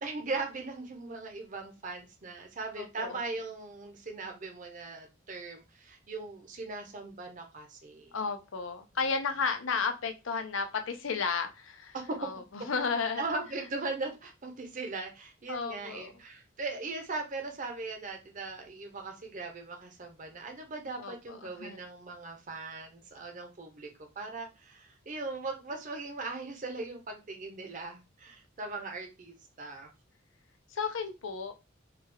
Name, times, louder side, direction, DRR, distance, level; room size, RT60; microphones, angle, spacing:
voice 1, 0.0-8.1 12.1-12.2 13.2-29.9, right 3 dB, 40° right, 3 dB, 0.7 m, -39 dB
voice 2, 2.8-3.2 8.1-13.2 15.5-16.1 21.0-21.8 30.7-31.5, left 5 dB, 80° left, 6 dB, 0.6 m, -33 dB
3.3 x 2.3 x 3.3 m, 0.26 s
head